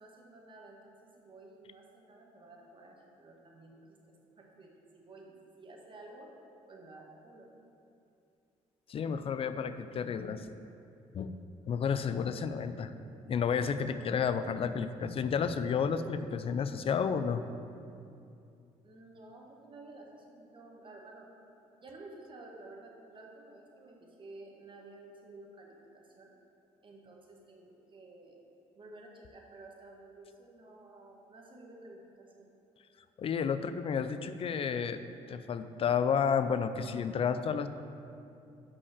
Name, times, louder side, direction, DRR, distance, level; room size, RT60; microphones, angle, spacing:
voice 1, 0.0-6.3 6.7-7.5 18.8-21.3 21.8-26.3 26.8-28.4 28.7-32.5, right 2 dB, 40° right, -1 dB, 1.5 m, -52 dB
voice 2, 8.9-10.5 11.1-11.4 11.7-12.9 13.3-17.4 33.2-35.0 35.3-37.7, left 6 dB, 45° left, 11 dB, 0.4 m, -31 dB
5.5 x 5.4 x 6.6 m, 2.6 s
cardioid pair, 75°, 13 cm